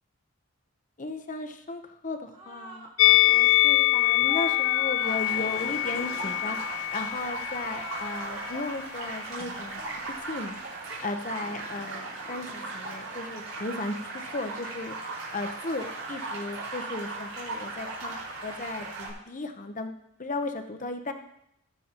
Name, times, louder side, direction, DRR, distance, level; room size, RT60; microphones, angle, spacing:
voice 1, 1.0-9.8 10.3-10.6 11.0-15.0 15.3-19.9 20.2-21.1, left 2 dB, 35° left, 7 dB, 0.9 m, -35 dB
sound 1, 2.3-2.9 3.2-3.6 4.2-7.0 7.4-8.8 9.2-10.3 11.4-13.2, right 2 dB, 30° right, 1.9 m, -44 dB
Musical instrument, 3.0-8.2 8.5-8.7, left 19 dB, 70° left, 0.3 m, -24 dB
sound 2, 5.0-19.1, right 3 dB, 85° right, 5.0 m, -38 dB
20.5 x 7.1 x 3.0 m, 0.78 s
head